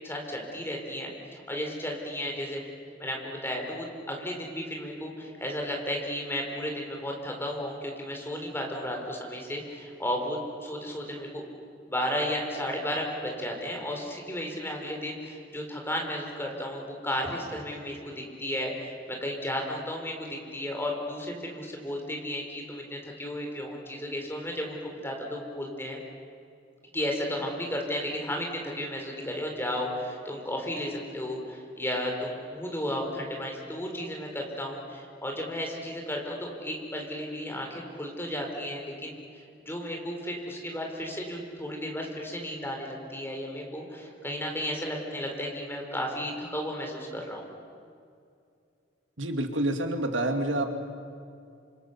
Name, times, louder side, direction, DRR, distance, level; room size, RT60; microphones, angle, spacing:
voice 1, 0.0-2.6 3.0-11.4 11.9-18.1 18.4-26.0 26.9-39.1 39.7-47.5, left 1 dB, 15° left, 1 dB, 4.5 m, -34 dB
voice 2, 49.2-50.7, right 1 dB, 90° right, 5 dB, 2.4 m, -28 dB
28.5 x 26.5 x 7.0 m, 2.4 s
head